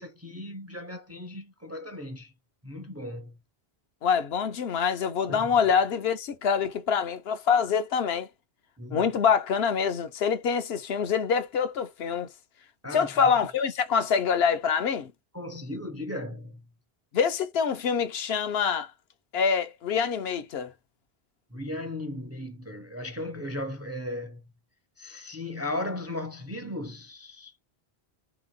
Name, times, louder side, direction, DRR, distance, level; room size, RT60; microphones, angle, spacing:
voice 1, 0.0-2.3 2.6-3.4 5.3-5.5 8.8-9.0 12.8-13.1 15.3-16.6 21.5-24.4 25.0-27.5, left 1 dB, 20° right, 0.5 m, -36 dB
voice 2, 4.0-8.3 8.9-12.3 12.9-15.1 17.1-18.9 19.3-20.7, left 6 dB, 75° left, 0.9 m, -25 dB
3.4 x 2.9 x 3.8 m
omnidirectional pair, 1.1 m